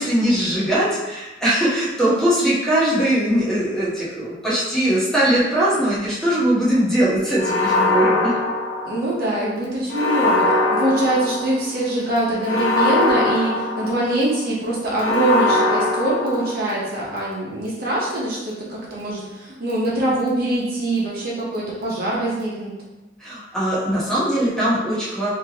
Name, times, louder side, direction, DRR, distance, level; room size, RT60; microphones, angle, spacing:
voice 1, 0.0-8.3 23.2-25.3, right 1 dB, 5° left, -10 dB, 1.1 m, -20 dB
sound 1, 7.4-9.2 9.9-11.7 12.4-14.3 14.9-16.8, left 2 dB, 75° left, 0.8 m, -21 dB
voice 2, 8.8-22.7, right 1 dB, 55° right, -6 dB, 1.0 m, -23 dB
3.5 x 2.9 x 2.9 m, 1.1 s
head